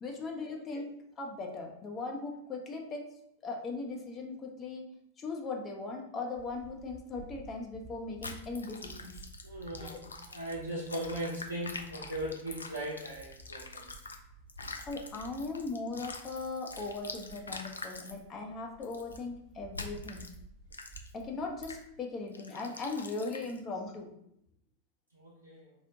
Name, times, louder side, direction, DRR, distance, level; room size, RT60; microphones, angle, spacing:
voice 1, 0.0-3.1 3.4-4.8 5.2-9.1 9.8-9.9 14.9-20.3 21.1-24.1, left 3 dB, 25° left, 1 dB, 0.5 m, -39 dB
sound 1, 6.4-22.0, right 4 dB, 25° right, 0.4 m, -54 dB
sound 2, 8.2-14.2 14.5-18.2 18.8-19.2 19.7-20.3 20.7-21.2 21.6-21.8 22.3-23.6, left 3 dB, 75° left, 0.3 m, -45 dB
voice 2, 9.4-13.9 25.1-25.7, right 1 dB, 85° right, -5 dB, 0.5 m, -39 dB
2.7 x 2.1 x 3.8 m, 0.76 s
figure-of-eight pair, 90°, 0 cm